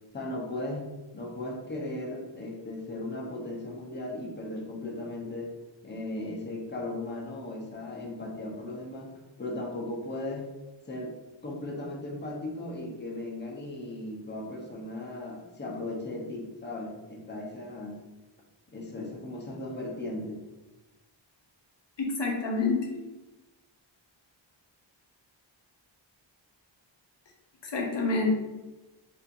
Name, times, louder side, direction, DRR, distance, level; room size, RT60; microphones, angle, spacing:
voice 1, 0.1-0.8 1.1-5.5 5.8-9.1 9.4-10.5 10.9-11.1 11.4-18.0 18.7-20.4, left 2 dB, 25° left, -2 dB, 0.7 m, -37 dB
voice 2, 22.0-22.9 27.6-28.3, left 3 dB, 65° left, 0 dB, 0.7 m, -27 dB
4.3 x 2.6 x 2.5 m, 1.1 s
wide cardioid pair, 100°, 47 cm